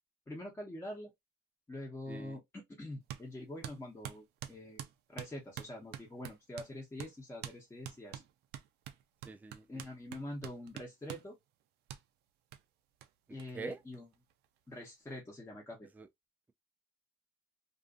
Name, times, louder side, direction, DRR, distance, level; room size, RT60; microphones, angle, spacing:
voice 1, 0.3-1.1 1.7-8.2 9.7-11.4 13.3-14.1 14.7-15.9, left 1 dB, 15° left, 0.9 m, -45 dB
voice 2, 2.1-2.4 9.2-9.9 13.5-13.8 15.9-16.1, right 3 dB, 10° right, 0.3 m, -44 dB
sound 1, 3.1-3.3 3.6-6.7 7.0-7.1 7.4-7.6 7.8-11.3 11.9-12.0 12.5-12.6 13.0-13.1 13.4-13.5 13.7-14.4, right 11 dB, 80° right, 0.5 m, -46 dB
2.5 x 2.5 x 2.4 m
cardioid pair, 110°, 17 cm